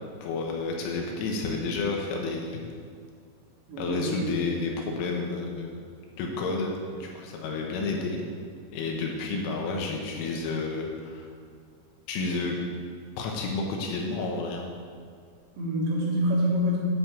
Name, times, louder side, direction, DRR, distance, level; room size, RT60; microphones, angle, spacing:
voice 1, 0.0-2.6 3.8-5.7 6.2-8.2 8.7-11.3 12.1-12.6 13.2-14.7, left 3 dB, 75° left, 0 dB, 3.3 m, -30 dB
voice 2, 3.7-4.4 15.6-16.8, equal, 65° right, -5 dB, 3.3 m, -26 dB
9.9 x 4.2 x 7.5 m, 2.2 s
omnidirectional pair, 5.9 m